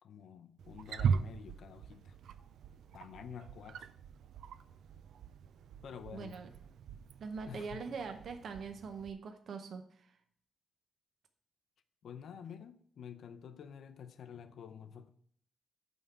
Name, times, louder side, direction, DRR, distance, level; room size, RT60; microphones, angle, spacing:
voice 1, 0.0-2.1 2.9-3.9 5.8-6.4 7.5-7.9 12.0-15.1, left 7 dB, 65° left, 0.6 m, -49 dB
Wild animals, 0.6-9.1, right 6 dB, 80° right, 0.4 m, -40 dB
voice 2, 6.1-6.5 7.2-9.8, right 5 dB, 55° right, 0.7 m, -42 dB
8.9 x 3.7 x 6.7 m
wide cardioid pair, 180°, 0 cm